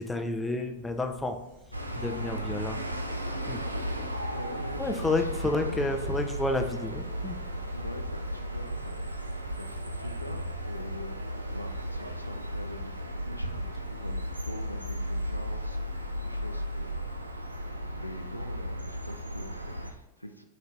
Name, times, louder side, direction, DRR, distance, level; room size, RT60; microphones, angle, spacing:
voice 1, 0.0-1.4 1.9-2.8 3.5-3.6 4.8-7.4, left 2 dB, 10° left, 6 dB, 0.4 m, -30 dB
Insect, 0.6-15.7, right 4 dB, 60° right, 1.3 m, -51 dB
sound 1, 1.7-19.9, equal, 85° right, 0.4 m, -35 dB
voice 2, 4.3-5.9 7.7-17.6 17.9-20.5, left 1 dB, 90° left, 6 dB, 0.3 m, -44 dB
3.9 x 2.8 x 3.3 m, 0.85 s
figure-of-eight pair, 90°, 0 cm